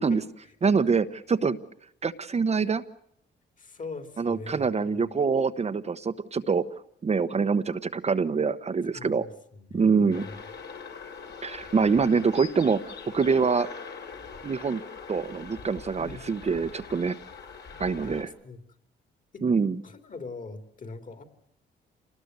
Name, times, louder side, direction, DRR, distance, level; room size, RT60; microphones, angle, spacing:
voice 1, 0.1-0.5 3.6-5.0 8.9-10.4 16.0-16.4 18.0-18.6 19.3-19.4 19.8-21.2, left 3 dB, 40° left, 8 dB, 3.3 m, -42 dB
voice 2, 0.6-1.6 2.0-2.8 4.2-6.6 7.0-9.3 9.7-10.3 11.4-12.8 13.1-13.7 14.4-14.8 15.1-17.1 17.8-18.3 19.4-19.8, right 5 dB, 35° right, 9 dB, 1.0 m, -25 dB
sound 1, 10.1-18.2, left 5 dB, 60° left, 3.5 m, -42 dB
27.5 x 19.5 x 8.2 m, 0.72 s
cardioid pair, 90°, 20 cm